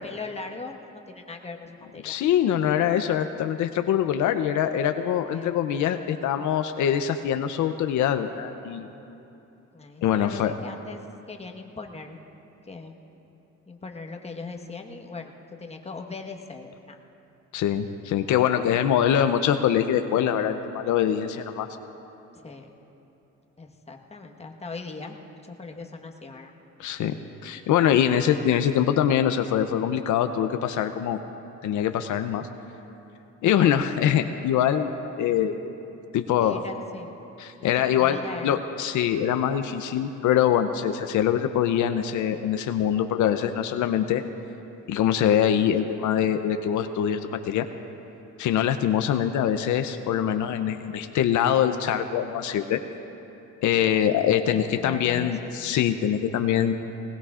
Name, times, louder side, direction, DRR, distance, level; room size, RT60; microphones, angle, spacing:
voice 1, 0.0-2.2 5.3-5.6 9.7-12.2 12.6-12.9 13.7-15.3 15.6-17.0 18.7-18.8 22.3-22.8 23.6-26.5 36.4-37.2 37.6-38.6 54.4-55.5, left 4 dB, 20° left, 2 dB, 1.3 m, -39 dB
voice 2, 2.0-8.9 10.0-10.5 17.5-21.7 26.8-27.1 27.4-31.2 31.6-32.5 33.4-35.6 36.1-36.6 37.4-44.2 44.9-47.6 48.4-52.8 53.6-56.7, left 9 dB, 75° left, 8 dB, 0.6 m, -23 dB
20.0 x 18.5 x 2.5 m, 3.0 s
cardioid pair, 90°, 30 cm